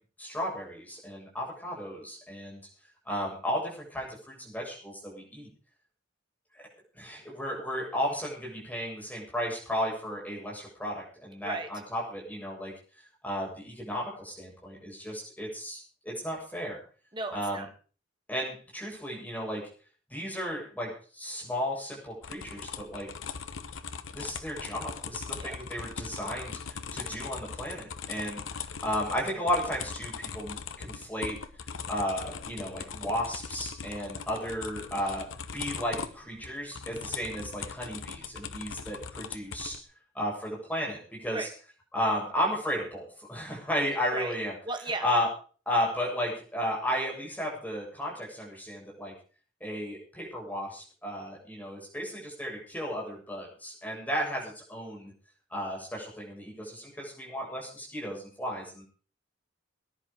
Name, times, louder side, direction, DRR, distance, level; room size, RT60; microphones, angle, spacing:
voice 1, 0.2-2.6 3.1-5.5 6.5-6.7 6.9-12.7 13.2-16.8 17.3-17.7 18.3-19.7 20.1-23.1 24.1-31.4 31.9-39.8 40.1-41.5 41.9-44.5 45.0-45.3 45.7-49.1 49.6-55.1 55.5-58.8, equal, 10° left, -3 dB, 7.6 m, -34 dB
voice 2, 17.1-17.7 25.4-25.6 27.0-27.2 41.3-41.5 43.8-44.3 44.7-45.0, right 2 dB, 25° right, 5 dB, 2.2 m, -36 dB
sound 1, 22.2-39.8, left 6 dB, 85° left, 1.2 m, -40 dB
19.5 x 10.5 x 5.2 m, 0.41 s
head